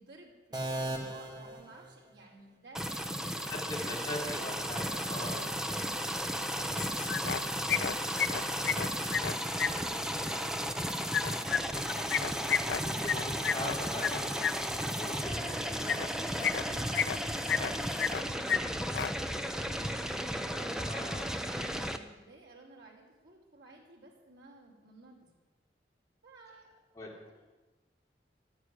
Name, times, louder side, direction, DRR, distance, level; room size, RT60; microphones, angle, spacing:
voice 1, 0.0-3.8 5.2-6.2 6.6-8.4 8.9-12.4 15.1-15.8 16.7-25.2 26.2-27.4, right 2 dB, 85° right, -3 dB, 4.5 m, -55 dB
sound 1, 0.5-2.4, right 1 dB, 25° right, 1.7 m, -38 dB
sound 2, 2.7-22.0, equal, 5° right, 0.7 m, -34 dB
voice 2, 3.5-5.9 12.8-14.6 15.0-16.0 20.8-21.3 26.9-27.1, left 1 dB, 20° left, -4 dB, 4.0 m, -41 dB
sound 3, 6.8-7.4 7.7-9.7 11.1-14.5 15.8-16.1 16.4-17.2 17.5-18.2 18.5-18.6 18.9-19.1, left 7 dB, 75° left, 0.4 m, -31 dB
13.0 x 9.8 x 10.0 m, 1.2 s
head